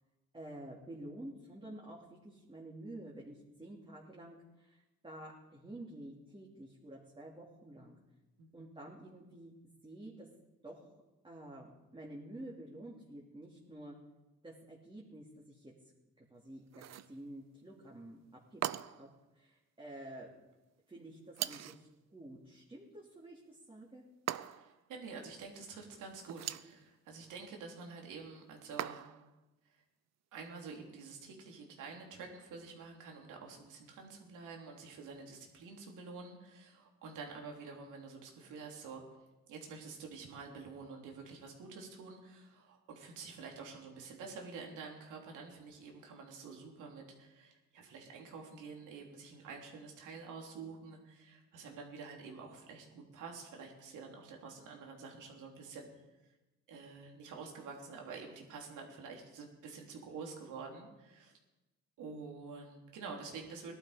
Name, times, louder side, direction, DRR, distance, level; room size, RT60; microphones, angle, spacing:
voice 1, 0.3-8.0 8.5-9.5 9.8-10.3 10.6-10.9 11.2-13.9 14.4-15.7 16.3-18.2 18.5-19.1 19.3-20.3 20.9-24.0, right 1 dB, 15° right, -4 dB, 2.7 m, -50 dB
voice 2, 8.4-8.7 24.6-29.0 29.7-29.8 30.3-39.0 39.5-55.9 56.7-61.4 62.0-63.7, right 4 dB, 90° right, 1 dB, 3.3 m, -48 dB
sound 1, 16.7-17.2 18.6-19.1 21.3-21.9 24.3-24.8 26.2-26.8 28.8-29.3, right 12 dB, 60° right, 0.6 m, -40 dB
18.0 x 12.0 x 5.1 m, 1.1 s
cardioid pair, 90°, 30 cm